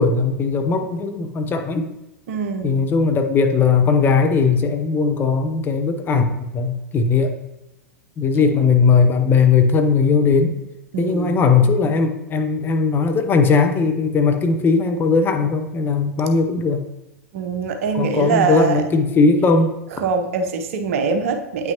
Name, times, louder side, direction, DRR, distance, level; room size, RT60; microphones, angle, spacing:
voice 1, 0.0-1.9 2.6-7.3 8.2-10.5 11.0-16.8 17.9-19.7, left 4 dB, 25° left, 5 dB, 0.8 m, -18 dB
voice 2, 2.3-2.8 10.9-11.4 17.3-18.8 19.9-21.7, right 5 dB, 60° right, 5 dB, 0.9 m, -23 dB
8.9 x 5.8 x 3.0 m, 0.95 s
figure-of-eight pair, 90°, 8 cm